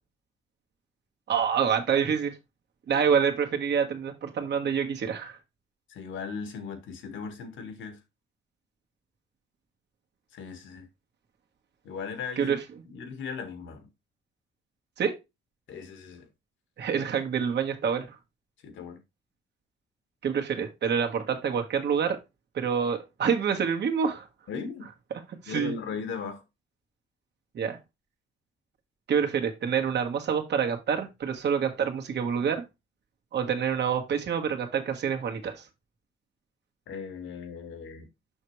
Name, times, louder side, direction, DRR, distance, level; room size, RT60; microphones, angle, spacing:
voice 1, 1.3-2.3 2.9-5.4 12.4-12.6 15.0-15.1 16.8-18.2 20.2-22.2 22.5-24.3 25.4-25.8 27.5-27.8 29.1-32.6 33.3-35.6, right 7 dB, 60° right, 1.7 m, -27 dB
voice 2, 5.9-8.0 10.3-10.9 11.8-12.6 12.9-13.9 15.7-16.3 18.6-19.0 24.5-24.9 25.5-26.4 36.9-38.1, left 5 dB, 75° left, 1.7 m, -37 dB
6.4 x 6.0 x 3.3 m
cardioid pair, 90°, 20 cm